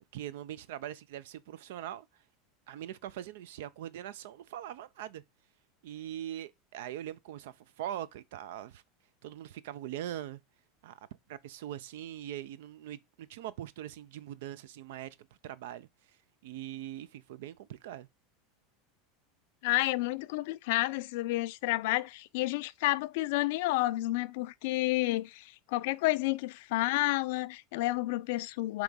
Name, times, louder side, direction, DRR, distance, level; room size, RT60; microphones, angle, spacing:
voice 1, 0.1-2.1 2.7-5.2 5.8-8.8 9.2-10.4 10.8-11.0 11.3-15.2 15.4-15.9 16.4-18.1, right 12 dB, 70° right, 0.4 m, -42 dB
voice 2, 19.6-28.8, left 19 dB, 65° left, 0.3 m, -30 dB
4.6 x 3.0 x 3.8 m
hypercardioid pair, 85°, 0 cm